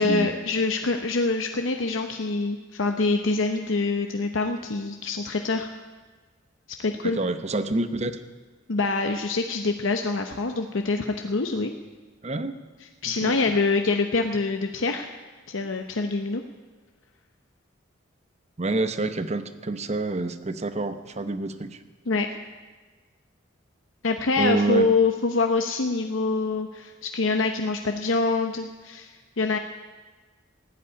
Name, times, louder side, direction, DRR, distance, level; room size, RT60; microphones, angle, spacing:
voice 1, 0.0-5.7 6.8-7.2 8.7-11.7 12.8-15.1 15.5-16.4 22.1-22.3 24.0-29.6, left 3 dB, 70° left, 5 dB, 0.8 m, -25 dB
voice 2, 7.0-8.1 12.2-12.6 13.2-13.4 18.6-21.8 24.4-24.9, right 2 dB, 35° right, 11 dB, 0.8 m, -27 dB
15.0 x 8.5 x 9.8 m, 1.3 s
head